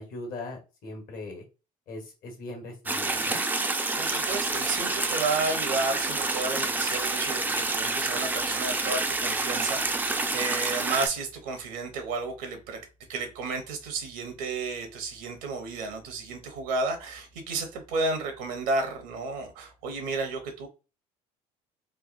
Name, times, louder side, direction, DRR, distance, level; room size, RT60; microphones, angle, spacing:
voice 1, 0.0-1.4 1.9-3.4, left 2 dB, 55° left, 3 dB, 1.3 m, -40 dB
sound 1, 2.9-11.1, right 3 dB, 10° right, 0.4 m, -28 dB
voice 2, 3.9-12.8 13.1-20.7, right 3 dB, 80° right, 6 dB, 0.9 m, -32 dB
3.2 x 2.2 x 2.5 m, 0.30 s
hypercardioid pair, 65°, 17 cm